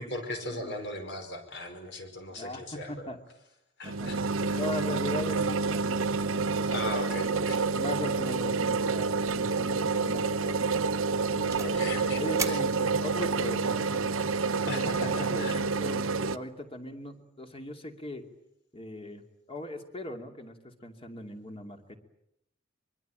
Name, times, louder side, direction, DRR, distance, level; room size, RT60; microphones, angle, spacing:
voice 1, 0.0-3.1 3.8-4.6 6.7-7.6 11.6-12.6 14.7-15.6, left 1 dB, 60° left, 6 dB, 5.4 m, -38 dB
voice 2, 2.3-3.2 3.8-6.7 7.2-7.4 7.8-10.5 11.3-11.8 12.2-14.1 14.7-18.2 18.7-19.2 19.5-22.0, left 1 dB, 30° left, 5 dB, 2.6 m, -39 dB
sound 1, 3.8-16.4, right 4 dB, 80° right, 1.0 m, -28 dB
sound 2, 7.5-7.8 8.1-8.4 8.6-8.7 9.3-9.5 9.9-10.2 10.7-11.8 12.4-13.3, right 5 dB, 15° right, 1.6 m, -39 dB
24.5 x 23.0 x 9.1 m, 0.80 s
head